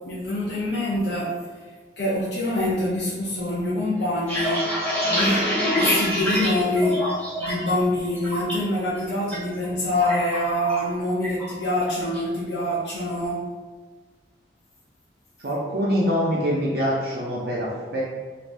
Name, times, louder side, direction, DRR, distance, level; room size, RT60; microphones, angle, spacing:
voice 1, 0.1-1.3 2.0-4.6 5.1-5.5 5.8-7.0 7.4-13.4, left 1 dB, 70° left, -7 dB, 0.6 m, -25 dB
sound 1, 4.0-7.7 8.0-8.5 8.9-9.4 9.6-10.9 11.2-11.5 11.8-12.3, equal, 5° left, 1.1 m, -25 dB
voice 2, 15.4-18.0, equal, 55° right, -6 dB, 0.5 m, -24 dB
3.3 x 2.5 x 2.5 m, 1.4 s
head